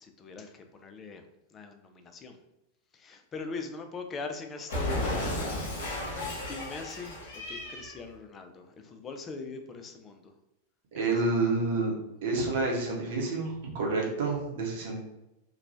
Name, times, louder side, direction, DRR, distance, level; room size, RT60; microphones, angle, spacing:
voice 1, 0.0-1.3 1.5-2.4 2.9-5.6 6.5-10.3 10.9-11.3, left 4 dB, 25° left, 5 dB, 0.4 m, -41 dB
Cat, 4.7-8.0, left 1 dB, 60° left, 0.9 m, -34 dB
voice 2, 10.9-11.9 12.2-15.0, right 3 dB, 55° right, -1 dB, 0.8 m, -29 dB
2.9 x 2.2 x 2.6 m, 0.91 s
figure-of-eight pair, 90°, 0 cm